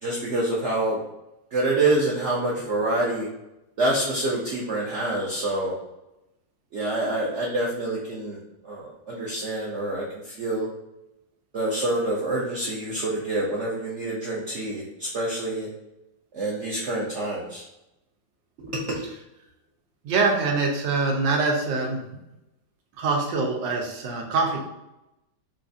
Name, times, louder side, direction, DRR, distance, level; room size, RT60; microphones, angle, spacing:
voice 1, 0.0-1.0 1.5-3.3 3.8-5.7 6.7-10.7 11.5-15.7 16.3-17.6 18.6-19.0, right 2 dB, 70° right, -4 dB, 0.7 m, -27 dB
voice 2, 20.0-22.0 23.0-24.6, right 3 dB, 90° right, 1 dB, 1.4 m, -24 dB
4.4 x 2.4 x 2.5 m, 0.91 s
omnidirectional pair, 1.9 m